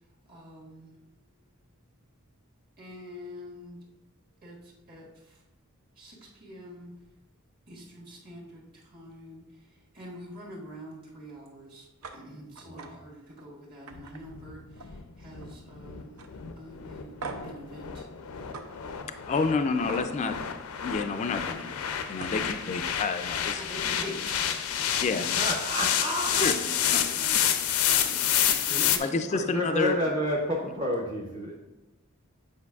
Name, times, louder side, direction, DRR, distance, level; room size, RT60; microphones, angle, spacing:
voice 1, 0.3-1.1 2.8-3.8 4.4-5.4 5.9-6.9 7.7-11.9 12.1-18.1 18.8-19.2 19.6-19.7 20.2-20.3 21.4-21.7 22.2-22.6 23.6-25.1 26.2-27.4 27.8-28.8 29.0-29.2, equal, 45° right, -4 dB, 1.7 m, -46 dB
sound 1, 12.0-12.2 12.6-12.9 13.3-13.5 13.9-15.0 15.3-15.7 16.2-16.3 17.2-17.6 18.5-18.7 19.9-20.1 21.8-21.9 22.2-22.5, right 3 dB, 85° right, 0.5 m, -41 dB
voice 2, 12.7-13.0 25.4-26.5 28.7-29.1 29.3-31.5, equal, 30° right, -2 dB, 0.7 m, -30 dB
sound 2, 13.9-29.0, left 9 dB, 90° left, 0.5 m, -29 dB
voice 3, 19.3-20.4 20.8-21.7 22.1-23.7 25.0-25.4 26.4-26.5 26.9-27.0 29.0-30.0, left 4 dB, 30° left, 9 dB, 0.3 m, -29 dB
8.2 x 5.1 x 2.4 m, 1.0 s
head